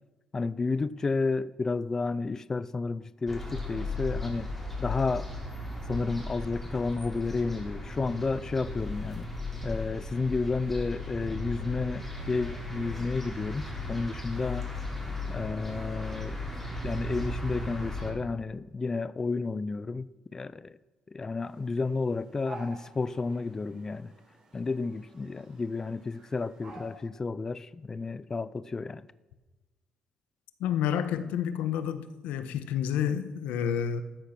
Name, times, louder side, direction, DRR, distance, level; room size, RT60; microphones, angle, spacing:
voice 1, 0.3-4.5 4.8-5.3 5.9-9.3 9.6-14.7 15.3-16.4 16.8-20.8 21.1-24.1 24.5-29.1, left 3 dB, 20° left, 0.4 m, -31 dB
sound 1, 3.3-18.1, left 2 dB, 5° left, 4.6 m, -36 dB
sound 2, 21.4-27.0, right 3 dB, 40° right, 5.1 m, -51 dB
voice 2, 30.6-34.0, left 9 dB, 85° left, 1.3 m, -29 dB
14.0 x 13.5 x 6.0 m
cardioid pair, 125°, 2 cm